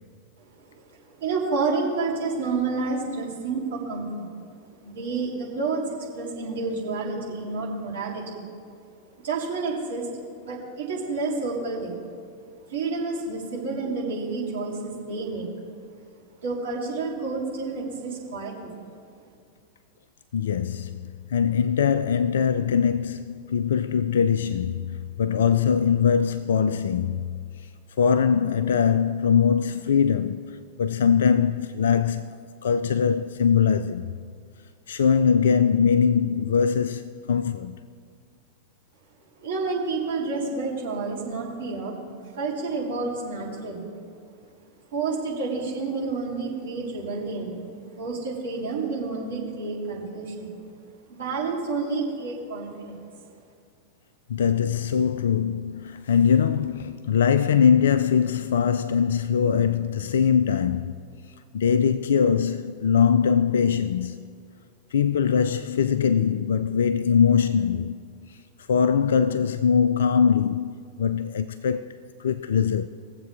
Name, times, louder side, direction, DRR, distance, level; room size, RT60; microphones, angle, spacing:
voice 1, 0.6-4.3 4.8-8.5 9.2-10.1 10.4-12.0 12.7-15.5 16.4-18.8 39.4-42.0 42.2-43.9 44.9-47.6 48.0-50.6 51.1-53.0, right 4 dB, 60° right, 3.0 m, -29 dB
voice 2, 20.3-21.0 21.3-27.5 28.0-34.1 34.9-37.8 54.3-61.0 61.5-64.3 64.9-68.0 68.3-68.4 68.7-72.9, left 7 dB, 65° left, 0.3 m, -22 dB
21.5 x 7.6 x 3.4 m
figure-of-eight pair, 90°, 0 cm